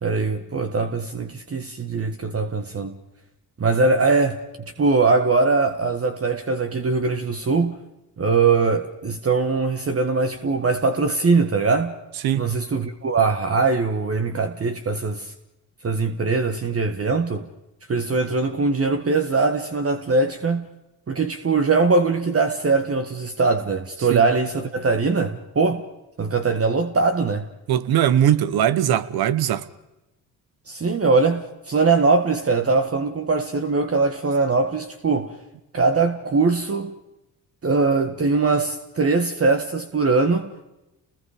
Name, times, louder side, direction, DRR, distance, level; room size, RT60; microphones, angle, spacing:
voice 1, 0.0-2.9 3.6-4.4 4.8-7.8 8.2-11.9 12.4-15.3 15.8-17.5 17.9-20.7 21.1-25.8 26.2-27.5 30.7-35.3 35.7-36.9 37.6-40.6, right 4 dB, 35° right, 1.7 m, -21 dB
voice 2, 12.2-12.5 24.1-24.2 27.7-29.7, right 10 dB, 70° right, 1.2 m, -20 dB
30.0 x 20.0 x 5.1 m
supercardioid pair, 55°, 38 cm